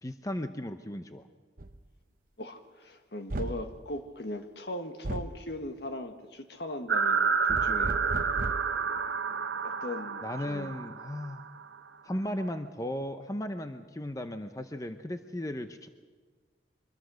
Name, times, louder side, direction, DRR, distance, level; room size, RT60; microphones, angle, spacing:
voice 1, 0.0-1.3 10.2-11.4 12.0-15.9, left 1 dB, 20° left, 8 dB, 0.7 m, -36 dB
sound 1, 1.6-1.8 3.3-3.7 5.0-5.4 7.5-8.7, right 1 dB, 50° right, 0.9 m, -35 dB
voice 2, 2.4-8.0 9.6-10.7, left 1 dB, 65° left, 7 dB, 1.7 m, -39 dB
sound 2, 6.9-11.6, right 6 dB, 85° right, 1.0 m, -29 dB
24.0 x 21.5 x 6.4 m, 1.4 s
head